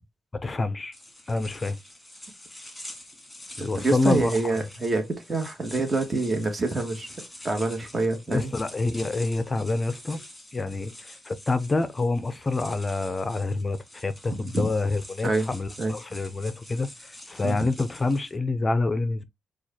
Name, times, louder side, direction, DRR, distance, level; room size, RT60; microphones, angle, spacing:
voice 1, 0.3-0.9 1.3-1.8 3.6-4.6 8.3-10.2 10.5-10.9 11.3-19.2, left 3 dB, 25° left, 0.6 m, -27 dB
sound 1, 0.9-18.4, left 1 dB, 10° left, 1.8 m, -46 dB
voice 2, 3.6-7.1 7.4-8.5 14.3-14.7 15.2-15.5 15.8-16.0 17.4-17.7, right 3 dB, 25° right, 1.5 m, -26 dB
4.6 x 2.5 x 4.3 m
cardioid pair, 90°, 0 cm